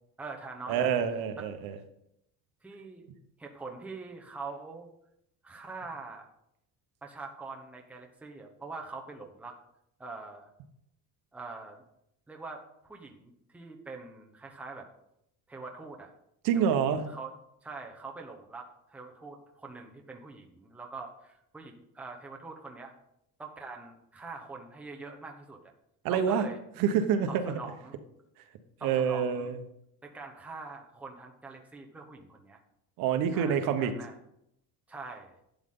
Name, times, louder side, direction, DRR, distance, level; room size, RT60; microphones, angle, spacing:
voice 1, 0.2-0.9 1.4-1.5 2.6-3.1 3.4-4.9 5.4-6.3 7.0-9.6 10.0-10.5 11.3-11.8 12.3-14.9 15.5-16.1 16.5-17.3 17.6-22.9 23.4-25.6 26.1-26.6 27.3-28.0 28.8-29.5 30.0-32.6 33.3-34.1 34.9-35.4, right 3 dB, 5° right, 0 dB, 0.9 m, -44 dB
voice 2, 0.7-1.7 16.4-17.1 26.0-26.5 26.8-27.5 28.8-29.6 33.0-33.9, right 7 dB, 75° right, 8 dB, 1.1 m, -27 dB
12.0 x 8.1 x 3.8 m, 0.79 s
cardioid pair, 170°, 35 cm